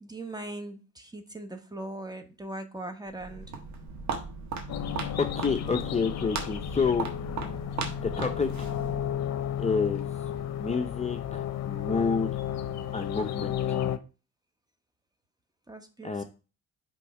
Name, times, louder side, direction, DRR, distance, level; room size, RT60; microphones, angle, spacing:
voice 1, 0.0-3.5 15.7-16.2, right 1 dB, 15° right, 6 dB, 1.0 m, -40 dB
Walk footsteps, 3.1-9.2, right 5 dB, 70° right, 1.3 m, -37 dB
sound 1, 4.7-14.0, left 10 dB, 60° left, 0.7 m, -33 dB
voice 2, 5.2-7.1 8.0-8.7 9.6-10.1 10.6-12.3 12.9-13.8 16.0-16.2, left 5 dB, 20° left, 5 dB, 0.6 m, -29 dB
5.4 x 3.6 x 5.5 m, 0.33 s
cardioid pair, 90°, 30 cm